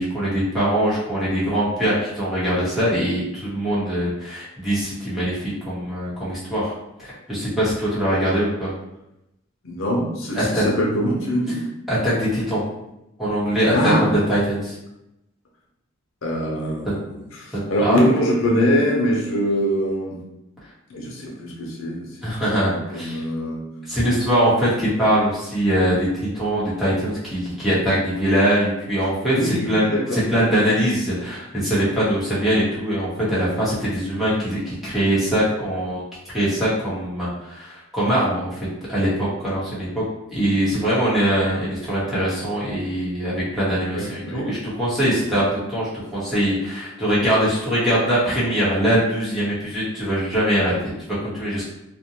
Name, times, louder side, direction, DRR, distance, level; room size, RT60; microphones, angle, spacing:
voice 1, 0.0-6.7 7.0-8.7 10.3-10.6 11.9-12.6 13.2-14.7 17.8-18.0 22.2-23.2 23.9-36.0 36.3-38.6 38.9-40.0 40.3-50.9 51.3-51.7, equal, ahead, -10 dB, 0.9 m, -22 dB
voice 2, 9.6-11.6 13.7-14.0 16.2-20.2 20.9-22.2 22.7-23.7 29.3-30.7 43.9-44.6 45.0-45.1, equal, 90° left, -2 dB, 0.7 m, -23 dB
2.5 x 2.1 x 2.8 m, 0.87 s
head